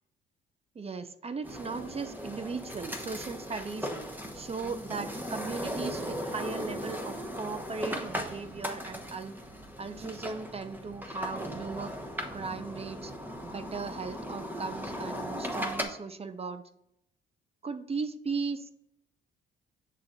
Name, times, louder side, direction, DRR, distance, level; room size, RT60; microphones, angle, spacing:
voice 1, 0.7-3.9 4.3-9.3 9.8-11.9 12.3-13.1 13.4-16.6 17.6-18.7, right 4 dB, 30° right, 11 dB, 0.6 m, -37 dB
sound 1, 1.4-15.8, equal, 10° right, 1.1 m, -38 dB
7.4 x 3.9 x 4.0 m, 0.76 s
cardioid pair, 90°, 20 cm